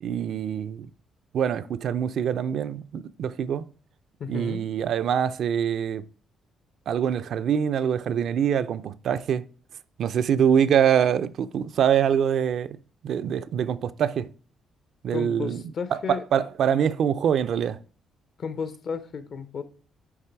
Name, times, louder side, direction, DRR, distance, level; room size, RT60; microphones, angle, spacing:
voice 1, 0.0-0.9 1.3-3.6 4.3-6.0 6.9-9.4 10.0-12.8 13.0-14.3 15.0-15.6 15.9-17.8, right 8 dB, 65° right, 0.4 m, -24 dB
voice 2, 4.2-4.6 15.1-16.2 18.4-19.6, left 6 dB, 60° left, 0.8 m, -33 dB
9.5 x 3.3 x 4.5 m
cardioid pair, 90°, 0 cm